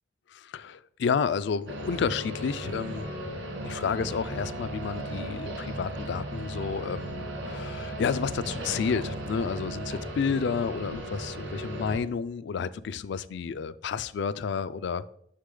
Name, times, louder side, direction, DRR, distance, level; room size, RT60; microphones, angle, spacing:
voice 1, 0.3-3.1 3.6-15.1, left 6 dB, 65° left, 0.3 m, -31 dB
sound 1, 1.7-12.0, right 1 dB, 80° right, 2.3 m, -36 dB
6.5 x 6.1 x 3.8 m
head